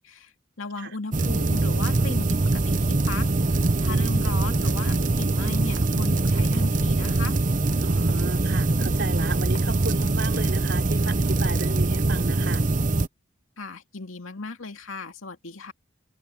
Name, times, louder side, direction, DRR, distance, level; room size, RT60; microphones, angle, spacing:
voice 1, 0.0-7.4 13.6-15.7, left 3 dB, 90° left, 2.4 m, -37 dB
sound 1, 1.1-13.1, right 2 dB, 40° right, 0.8 m, -23 dB
voice 2, 3.8-4.1 7.8-12.7, right 2 dB, 55° right, 3.9 m, -35 dB
sound 2, 5.0-10.6, left 1 dB, 40° left, 7.0 m, -50 dB
head